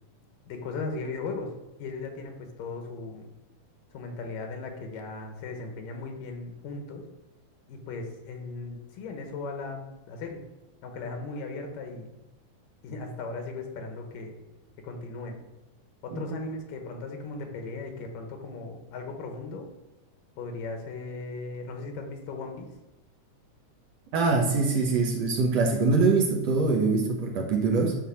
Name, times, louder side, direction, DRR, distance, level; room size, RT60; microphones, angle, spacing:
voice 1, 0.5-1.5 1.8-3.3 3.9-7.1 7.7-10.4 10.8-12.2 12.8-14.3 14.8-15.4 16.0-19.7 20.4-22.7, left 3 dB, 90° left, 4 dB, 3.1 m, -37 dB
voice 2, 24.1-28.0, right 4 dB, 60° right, 0 dB, 2.1 m, -24 dB
11.5 x 4.2 x 7.1 m, 0.98 s
omnidirectional pair, 3.7 m